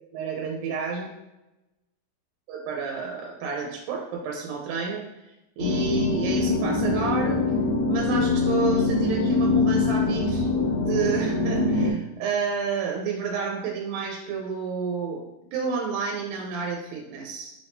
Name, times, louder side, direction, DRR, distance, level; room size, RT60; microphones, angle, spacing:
voice 1, 0.1-1.2 2.5-5.0 5.6-7.4 7.9-10.5 10.8-15.2 15.5-17.5, right 5 dB, 90° right, -1 dB, 2.4 m, -30 dB
sound 1, 5.6-11.9, left 3 dB, 65° left, 1.5 m, -23 dB
5.2 x 3.5 x 2.6 m, 0.98 s
omnidirectional pair, 3.9 m